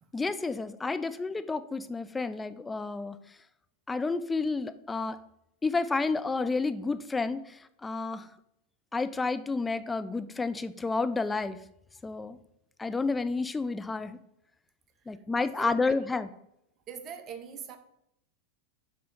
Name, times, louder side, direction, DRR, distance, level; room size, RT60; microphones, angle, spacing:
voice 1, 0.1-3.2 3.9-5.2 5.6-8.3 8.9-11.6 12.0-12.4 12.8-14.2 15.1-16.3, left 3 dB, 15° left, 0.5 m, -30 dB
voice 2, 15.0-16.0 16.9-17.8, right 7 dB, 40° right, 0.9 m, -43 dB
7.0 x 3.7 x 5.1 m
hypercardioid pair, 95°, 0 cm